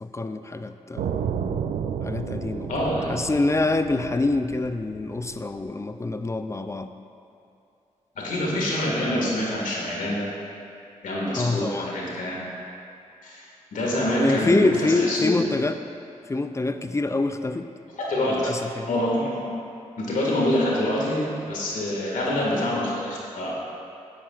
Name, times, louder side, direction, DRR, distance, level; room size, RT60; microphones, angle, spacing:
voice 1, 0.0-1.1 2.0-2.7 3.1-6.9 11.4-11.9 13.9-15.8 16.3-17.7 18.4-19.0, left 2 dB, 20° left, 9 dB, 0.4 m, -25 dB
sound 1, 1.0-5.8, right 7 dB, 75° right, 0.4 m, -32 dB
voice 2, 2.7-3.1 8.2-10.3 11.0-12.4 13.2-13.5 13.7-15.3 18.0-18.5 18.9-19.4 20.0-23.5, left 1 dB, 75° left, -4 dB, 1.9 m, -26 dB
9.4 x 8.8 x 2.4 m, 2.6 s
supercardioid pair, 50°, 13 cm